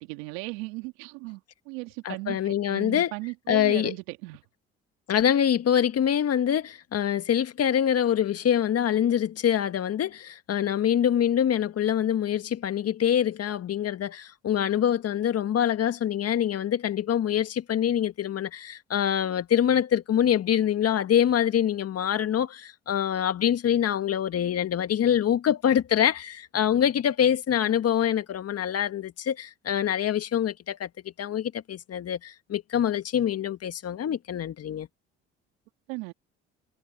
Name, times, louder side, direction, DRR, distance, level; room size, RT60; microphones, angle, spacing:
voice 1, 0.0-4.4 35.9-36.1, right 25 dB, 80° right, 2.5 m, -37 dB
voice 2, 2.0-3.1 3.5-3.9 5.1-30.9 31.2-34.9, left 9 dB, 50° left, 1.8 m, -25 dB
hypercardioid pair, 60°, 32 cm